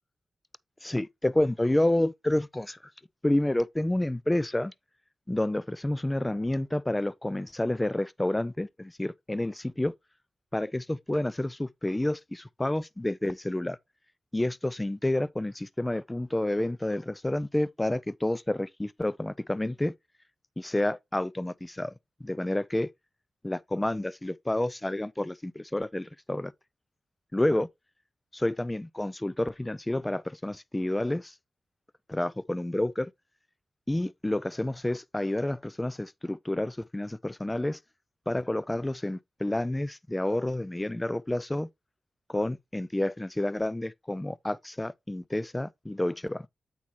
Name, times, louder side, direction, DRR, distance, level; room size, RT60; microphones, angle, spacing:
voice 1, 0.8-2.8 3.2-4.7 5.3-9.9 10.5-13.8 14.3-19.9 20.6-21.9 22.2-22.9 23.4-26.5 27.3-27.7 28.3-31.3 32.1-33.1 33.9-37.8 38.3-41.7 42.3-46.5, left 1 dB, 20° left, 0.4 m, -29 dB
8.4 x 5.7 x 2.9 m
supercardioid pair, 40°, 0 cm